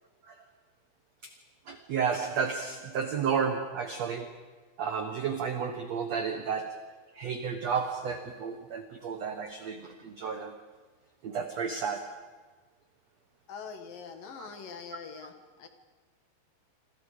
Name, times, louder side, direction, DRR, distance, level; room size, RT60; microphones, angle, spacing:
voice 1, 1.7-4.4 4.8-10.5 11.2-12.2 14.4-14.5, right 6 dB, 80° right, 7 dB, 1.5 m, -32 dB
voice 2, 13.5-15.7, left 6 dB, 60° left, 7 dB, 3.1 m, -43 dB
27.0 x 26.5 x 5.1 m, 1.4 s
omnidirectional pair, 4.9 m